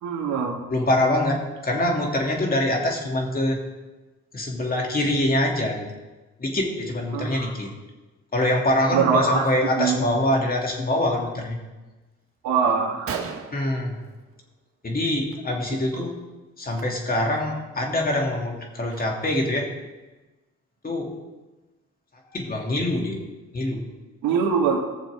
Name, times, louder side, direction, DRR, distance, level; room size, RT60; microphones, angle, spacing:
voice 1, 0.0-0.6 7.1-7.3 8.9-9.5 9.8-10.0 12.4-13.1 15.9-16.1 24.2-24.8, right 6 dB, 85° right, -2 dB, 2.1 m, -23 dB
voice 2, 0.7-3.6 4.3-5.9 6.4-7.7 8.3-11.6 13.5-14.0 14.8-16.1 16.6-19.7 20.8-21.2 22.3-23.2 23.5-23.8, left 1 dB, 30° left, 0 dB, 2.8 m, -24 dB
Gunshot gunfire, 12.4-12.5 12.8-12.9 13.1-14.7 15.0-15.4 15.6-15.8 16.6-16.8 17.4-17.5 17.9-19.5, right 6 dB, 45° right, 1.4 m, -37 dB
19.5 x 6.9 x 3.7 m, 1.2 s
cardioid pair, 90°, 30 cm